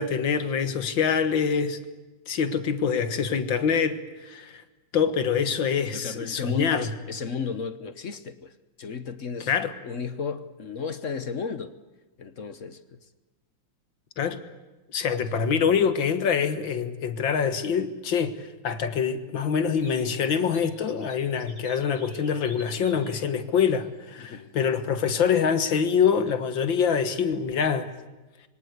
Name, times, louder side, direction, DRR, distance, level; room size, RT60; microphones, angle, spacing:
voice 1, 0.0-1.8 2.3-4.6 4.9-6.9 9.5-9.7 14.2-14.4 14.9-27.9, left 6 dB, 70° left, 10 dB, 2.2 m, -25 dB
voice 2, 5.9-9.5 9.8-11.7 12.2-13.1 15.3-15.5 24.2-24.5, left 5 dB, 50° left, 12 dB, 1.1 m, -34 dB
sound 1, 19.8-23.3 23.8-23.9 24.3-24.4 24.8-24.9, equal, 40° right, 7.0 m, -49 dB
26.0 x 23.5 x 8.1 m, 1.1 s
omnidirectional pair, 2.2 m